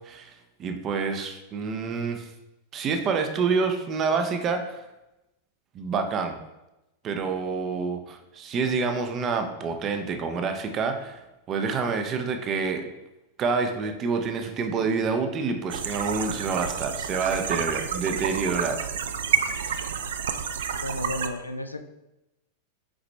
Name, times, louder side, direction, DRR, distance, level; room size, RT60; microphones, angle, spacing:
voice 1, 0.1-2.3 2.7-4.8 5.7-6.4 7.0-11.2 11.5-12.8 13.4-18.8 19.4-19.8, right 5 dB, 30° right, 6 dB, 0.7 m, -27 dB
sound 1, 15.7-21.3, right 7 dB, 60° right, 0.4 m, -29 dB
voice 2, 20.8-21.8, left 1 dB, 85° left, 7 dB, 0.4 m, -33 dB
6.0 x 4.9 x 3.2 m, 0.95 s
figure-of-eight pair, 90°, 0 cm